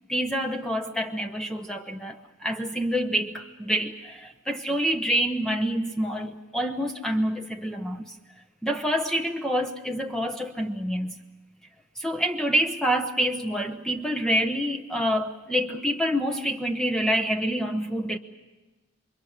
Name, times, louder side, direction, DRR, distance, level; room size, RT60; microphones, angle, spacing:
voice 1, 0.1-8.1 8.6-11.1 12.0-18.2, equal, 5° left, 4 dB, 1.0 m, -27 dB
28.5 x 24.5 x 6.6 m, 1.1 s
head